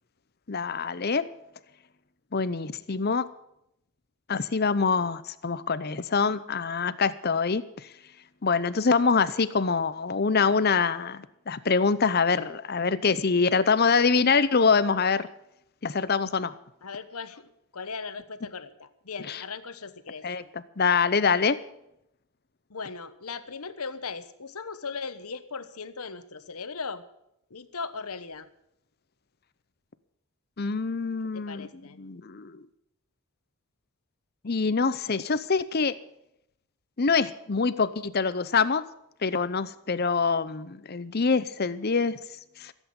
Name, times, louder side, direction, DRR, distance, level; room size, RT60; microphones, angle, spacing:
voice 1, 0.5-1.3 2.3-3.3 4.3-7.9 8.4-15.3 15.8-16.5 19.3-19.4 20.2-21.6 30.6-31.7 32.0-32.6 34.4-36.0 37.0-38.8 39.2-42.2 42.6-42.7, left 5 dB, 45° left, 14 dB, 0.7 m, -25 dB
voice 2, 16.8-20.2 22.7-27.0 27.5-28.5 31.3-32.0, left 4 dB, 80° left, 12 dB, 1.1 m, -38 dB
15.5 x 8.2 x 8.7 m, 0.80 s
head